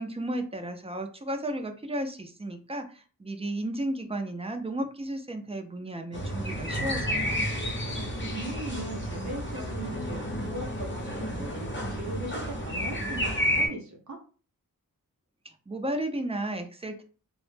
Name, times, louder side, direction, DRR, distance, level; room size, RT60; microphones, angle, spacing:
voice 1, 0.0-7.4 15.7-17.0, right 1 dB, 20° right, 5 dB, 0.3 m, -33 dB
sound 1, 6.1-13.7, equal, 30° left, 0.7 m, -31 dB
voice 2, 8.3-14.2, right 1 dB, 55° right, 1 dB, 0.6 m, -39 dB
2.0 x 2.0 x 3.1 m, 0.38 s
wide cardioid pair, 105°, 35 cm